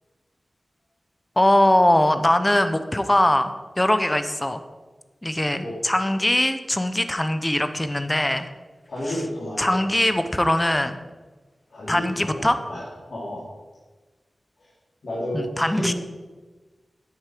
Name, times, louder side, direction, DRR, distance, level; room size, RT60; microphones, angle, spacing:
voice 1, 1.4-4.6 5.2-8.5 9.1-9.2 9.6-11.0 11.9-12.6 15.3-15.9, left 1 dB, 15° left, 10 dB, 0.7 m, -21 dB
voice 2, 8.9-9.7 11.7-13.5 15.0-15.9, equal, 80° left, -8 dB, 3.0 m, -31 dB
9.5 x 9.5 x 5.0 m, 1.3 s
wide cardioid pair, 110°, 0 cm